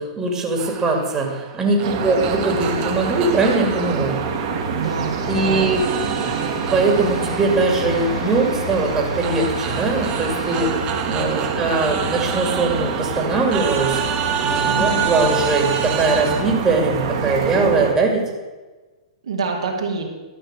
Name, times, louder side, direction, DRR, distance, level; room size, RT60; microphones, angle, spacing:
voice 1, 0.0-4.2 5.3-6.3 6.7-18.2, right 3 dB, 20° right, 1 dB, 2.4 m, -21 dB
sound 1, 0.6-5.3 5.7-16.4, right 8 dB, 35° right, 1.2 m, -29 dB
voice 2, 1.7-2.0 4.7-5.7 6.2-6.5 11.2-11.6 14.7-15.0 19.2-20.0, right 4 dB, 80° right, -1 dB, 2.3 m, -27 dB
sound 2, 1.8-17.9, right 5 dB, 55° right, 2.0 m, -26 dB
sound 3, 4.8-10.7, left 1 dB, 90° left, 3.9 m, -37 dB
12.5 x 5.5 x 7.5 m, 1.2 s
hypercardioid pair, 120°, 3 cm